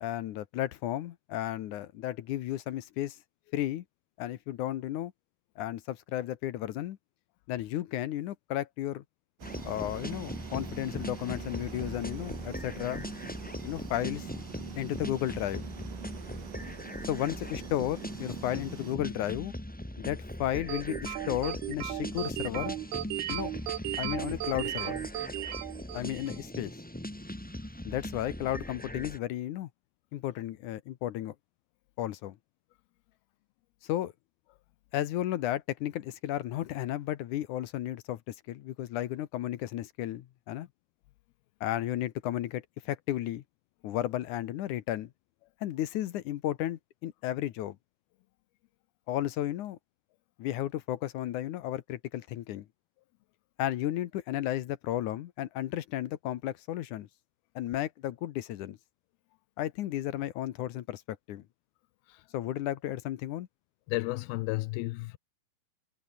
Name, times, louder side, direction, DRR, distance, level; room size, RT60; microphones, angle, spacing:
voice 1, 0.0-3.2 3.5-3.8 4.2-5.1 5.6-7.0 7.5-9.0 9.6-13.1 13.6-14.3 14.8-15.6 17.1-19.5 20.0-22.8 23.3-23.5 24.0-25.0 25.9-26.7 27.9-29.7 30.1-31.4 32.0-32.4 33.8-34.1 34.9-40.7 41.6-43.4 43.8-45.1 45.6-47.8 49.1-49.8 50.4-52.7 53.6-57.1 57.6-58.8 59.6-61.0 61.3-61.4 62.3-63.5, left 13 dB, 70° left, 2.1 m, -33 dB
sound 1, 9.4-29.2, left 1 dB, 10° left, 0.5 m, -40 dB
sound 2, 9.4-19.0, right 12 dB, 65° right, 2.9 m, -45 dB
sound 3, 20.7-26.4, right 13 dB, 90° right, 3.4 m, -35 dB
voice 2, 63.9-65.2, left 20 dB, 90° left, 2.5 m, -33 dB
omnidirectional pair, 4.3 m